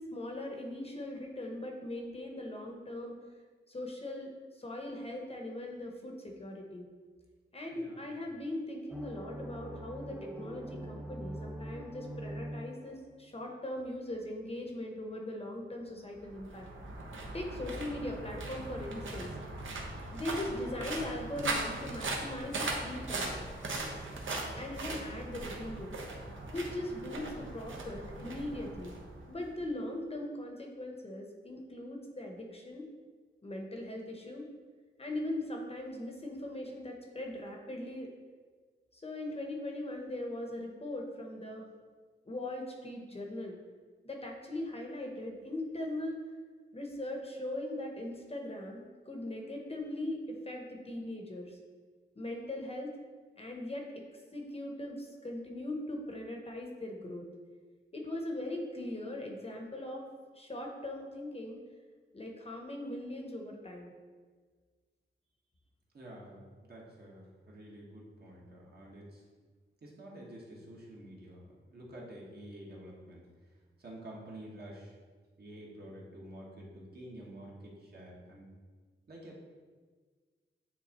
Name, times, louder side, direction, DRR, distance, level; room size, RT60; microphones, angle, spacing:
voice 1, 0.0-3.1 3.7-6.8 7.5-16.7 17.3-19.3 20.1-23.3 24.5-25.9 26.4-28.9 29.3-32.9 33.4-34.4 35.0-38.1 38.9-41.6 42.2-43.6 44.0-46.2 46.7-51.6 52.2-52.9 53.4-54.0 54.3-57.2 57.9-60.0 60.3-61.6 62.1-63.9, left 1 dB, 30° left, 1 dB, 0.8 m, -40 dB
voice 2, 7.7-8.1 65.9-69.2 69.8-73.3 73.8-75.0 75.4-78.5 79.1-79.4, right 1 dB, 50° right, -3 dB, 1.3 m, -49 dB
sound 1, 8.9-13.2, right 1 dB, 5° right, 0.8 m, -43 dB
sound 2, 16.2-29.6, right 2 dB, 75° right, 0.9 m, -39 dB
9.3 x 3.6 x 2.9 m, 1.5 s
wide cardioid pair, 130°, 20 cm